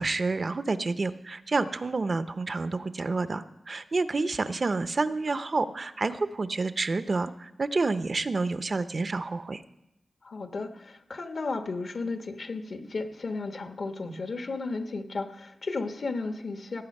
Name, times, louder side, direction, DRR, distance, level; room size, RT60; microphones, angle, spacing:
voice 1, 0.0-9.6, right 3 dB, 45° right, 12 dB, 0.6 m, -29 dB
voice 2, 10.2-16.8, left 3 dB, 60° left, 7 dB, 1.2 m, -34 dB
18.0 x 8.5 x 5.4 m, 0.86 s
wide cardioid pair, 100°, 0 cm